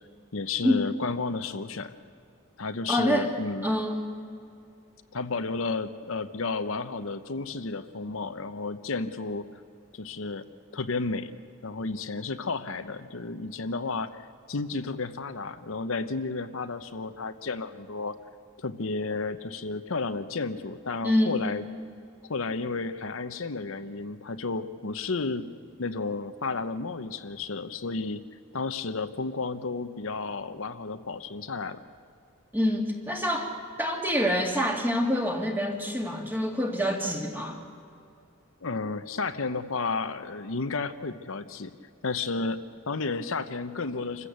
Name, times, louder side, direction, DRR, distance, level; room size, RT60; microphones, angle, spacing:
voice 1, 0.3-1.9 2.6-3.7 5.1-9.6 9.9-10.5 10.7-11.3 11.6-18.2 18.6-21.6 22.3-25.5 25.8-28.2 28.5-31.8 38.6-41.7 42.0-44.3, left 3 dB, 70° left, 10 dB, 0.8 m, -32 dB
voice 2, 2.9-3.3 3.6-4.1 21.0-21.4 32.5-33.5 33.8-37.6, equal, 10° right, 2 dB, 2.2 m, -26 dB
27.0 x 15.0 x 8.1 m, 2.4 s
head